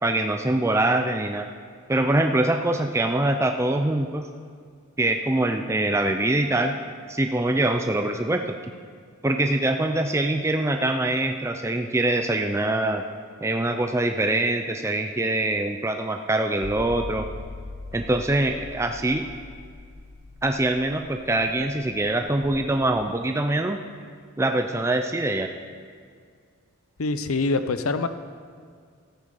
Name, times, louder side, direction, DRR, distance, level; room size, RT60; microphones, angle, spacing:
voice 1, 0.0-1.5 1.9-4.3 5.0-6.8 7.1-8.6 9.2-13.0 13.4-17.2 17.9-19.3 20.4-23.8 24.4-25.5, right 2 dB, 10° right, 5 dB, 0.4 m, -24 dB
sound 1, 16.6-22.8, left 2 dB, 35° left, 3.4 m, -41 dB
voice 2, 27.0-28.1, left 3 dB, 75° left, 11 dB, 0.6 m, -24 dB
13.5 x 8.4 x 5.2 m, 2.1 s
head